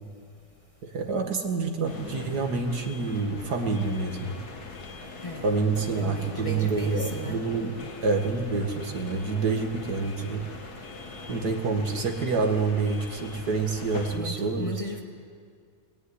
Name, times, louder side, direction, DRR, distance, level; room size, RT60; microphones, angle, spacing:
voice 1, 0.8-4.4 5.4-10.5 11.3-14.7, right 4 dB, 80° right, 4 dB, 2.5 m, -27 dB
sound 1, 1.8-14.2, left 3 dB, 75° left, 2.4 m, -41 dB
voice 2, 5.9-7.4 14.1-15.0, left 1 dB, 20° left, 2 dB, 1.8 m, -36 dB
20.0 x 17.5 x 9.9 m, 2.1 s
omnidirectional pair, 1.7 m